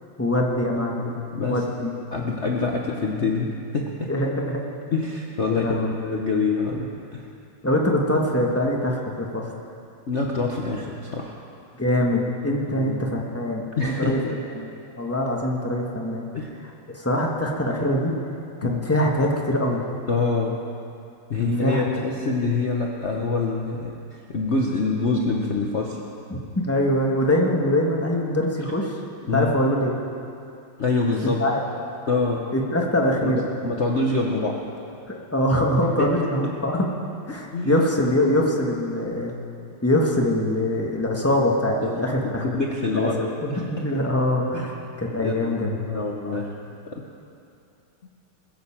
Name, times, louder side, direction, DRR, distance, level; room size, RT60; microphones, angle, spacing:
voice 1, 0.2-1.2 1.5-1.9 4.1-4.6 5.5-5.9 7.6-9.4 11.8-14.2 14.5-14.7 15.0-16.3 16.9-18.1 18.6-19.8 21.4-21.9 26.3-28.9 29.3-29.9 31.2-31.6 32.5-33.4 35.1-36.9 37.3-39.3 39.8-42.4 42.9-43.1 43.4-46.4, left 1 dB, 10° left, -1 dB, 1.1 m, -23 dB
voice 2, 1.3-4.1 4.9-7.3 10.1-11.4 12.7-13.1 13.8-14.3 16.3-16.5 18.6-18.8 20.1-20.6 21.3-26.0 29.3-29.5 30.8-31.4 32.1-32.5 33.2-33.3 33.6-34.6 36.0-36.1 37.5-37.8 41.8-42.1 42.4-43.7 44.5-44.7 45.2-46.5 46.9-47.0, left 3 dB, 45° left, -1 dB, 0.9 m, -26 dB
20.5 x 7.9 x 7.3 m, 2.6 s
omnidirectional pair, 2.4 m